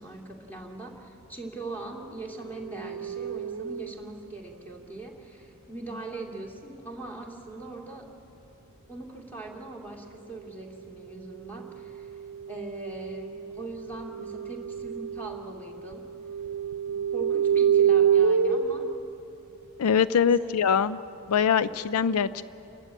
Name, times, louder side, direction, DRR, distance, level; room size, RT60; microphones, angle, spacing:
voice 1, 0.0-8.1 8.9-12.2 12.5-16.0 16.9-18.8 20.4-20.5, right 2 dB, 10° left, 0 dB, 2.4 m, -41 dB
sound 1, 2.6-4.0 11.8-15.5 15.7-18.9, right 8 dB, 85° right, 0.6 m, -27 dB
voice 2, 19.8-21.0 21.3-22.4, left 7 dB, 90° left, 15 dB, 0.4 m, -23 dB
29.0 x 12.0 x 8.9 m, 2.9 s
head